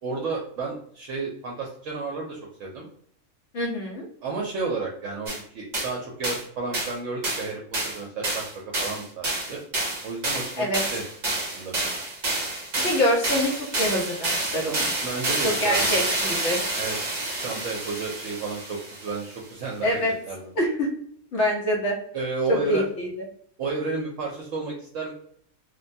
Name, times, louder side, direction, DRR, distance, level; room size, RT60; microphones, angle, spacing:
voice 1, 0.0-2.9 4.2-9.6 10.0-11.0 11.4-11.9 15.0-15.9 16.8-20.0 20.3-20.5 22.1-22.8 23.6-25.1, right 3 dB, 70° right, -1 dB, 0.9 m, -32 dB
voice 2, 3.5-4.1 10.6-10.8 12.8-13.5 13.8-14.9 15.4-16.6 19.8-20.1 20.6-20.9 21.3-22.0 22.5-23.1, equal, 60° left, -1 dB, 1.0 m, -25 dB
sound 1, 5.3-5.4 5.7-5.9 6.2-6.4 6.7-6.9 7.2-7.5 7.7-19.2, right 2 dB, 40° right, 0.8 m, -28 dB
3.2 x 2.2 x 2.6 m, 0.63 s
omnidirectional pair, 1.5 m